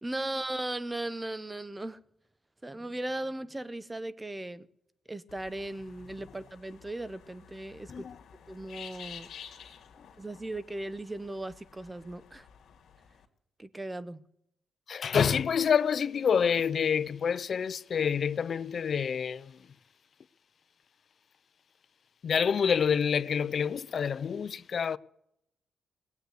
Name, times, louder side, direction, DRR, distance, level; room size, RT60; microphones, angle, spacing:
voice 1, 0.0-2.0 2.6-4.7 5.1-8.1 8.5-9.3 10.2-12.5 13.6-14.2, right 1 dB, 15° right, 0.7 m, -37 dB
sound 1, 5.3-13.2, left 7 dB, 70° left, 2.0 m, -51 dB
voice 2, 14.9-19.6 22.2-25.0, left 7 dB, 55° left, 0.5 m, -27 dB
19.0 x 8.2 x 8.0 m
cardioid pair, 90°, 0 cm